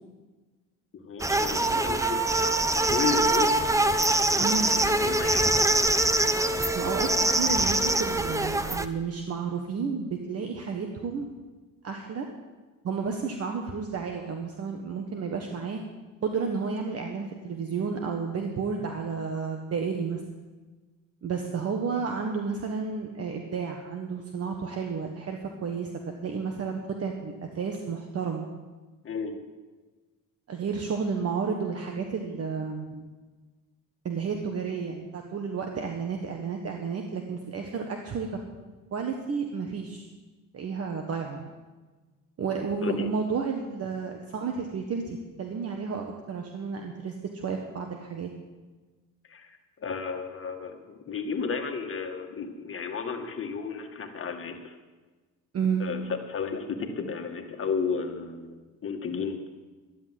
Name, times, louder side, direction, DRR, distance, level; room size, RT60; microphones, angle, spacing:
voice 1, 1.1-2.2 2.8-3.6 4.6-5.8 29.0-29.3 42.8-43.1 49.3-49.5 49.8-54.7 55.8-59.4, left 5 dB, 40° left, 4 dB, 1.9 m, -33 dB
sound 1, 1.2-8.9, right 2 dB, 10° right, 0.7 m, -24 dB
voice 2, 4.4-4.7 6.7-11.3 11.8-12.3 12.8-15.8 16.2-20.2 21.2-25.9 26.2-28.5 30.5-33.1 34.0-38.3 38.9-40.1 40.5-41.5 42.4-48.3 55.5-55.9, right 5 dB, 45° right, 3 dB, 1.5 m, -31 dB
12.5 x 10.5 x 7.6 m, 1.3 s
cardioid pair, 105°, 34 cm